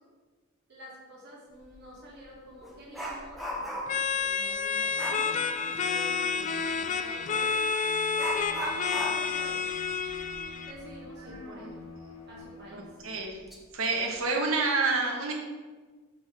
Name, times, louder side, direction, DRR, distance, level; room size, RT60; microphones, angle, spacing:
voice 1, 0.7-9.6 10.6-11.7 12.3-12.9 14.1-14.8, equal, 55° right, -5 dB, 1.3 m, -49 dB
Dog, 1.6-1.8 2.2-4.1 5.0-5.3 7.3-7.5 8.2-11.5 11.8-11.9 12.4-12.5 13.2-13.6 13.9-14.2, equal, ahead, 0.8 m, -37 dB
sound 1, 3.9-10.7, left 5 dB, 35° left, 0.3 m, -29 dB
Bowed string instrument, 4.7-13.3, left 2 dB, 85° left, 0.8 m, -47 dB
voice 2, 11.2-11.7 12.7-13.4 13.7-15.3, right 3 dB, 90° right, 0 dB, 1.2 m, -29 dB
5.4 x 3.7 x 5.7 m, 1.4 s
head